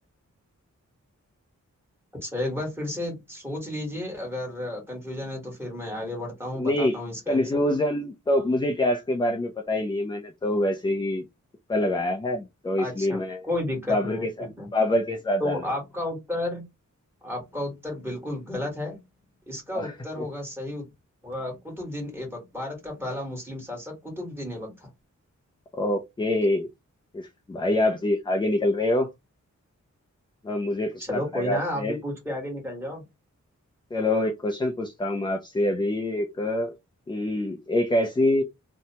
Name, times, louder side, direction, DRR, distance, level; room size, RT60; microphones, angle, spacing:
voice 1, 2.2-7.6 12.8-14.7 15.4-16.6 17.2-19.0 19.5-20.9 21.2-24.9 31.1-33.0, left 1 dB, 5° right, 1.5 m, -32 dB
voice 2, 6.6-7.0 7.3-11.2 11.7-13.4 13.9-15.5 19.7-20.3 25.7-26.7 27.1-29.1 30.4-32.0 33.9-36.7 37.1-38.4, left 1 dB, 15° left, 0.3 m, -25 dB
2.7 x 2.1 x 2.8 m
wide cardioid pair, 120°, 30 cm